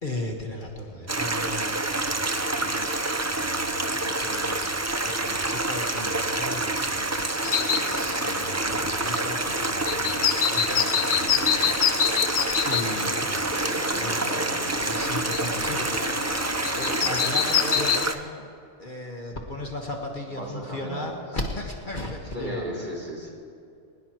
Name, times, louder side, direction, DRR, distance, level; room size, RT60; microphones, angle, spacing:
voice 1, 0.0-2.9 3.2-4.7 5.0-7.3 7.6-14.4 14.8-18.5 18.8-22.9, left 1 dB, 40° left, 0 dB, 1.6 m, -36 dB
voice 2, 0.9-1.3 12.7-12.9 13.5-14.7 16.9-17.1 20.4-21.1 22.3-23.3, right 1 dB, 40° right, -4 dB, 3.3 m, -37 dB
Stream, 1.1-18.2, right 2 dB, 20° right, 0.5 m, -27 dB
sound 1, 7.4-18.1, left 9 dB, 60° left, 0.5 m, -28 dB
21.5 x 19.5 x 3.0 m, 2.4 s
omnidirectional pair, 1.3 m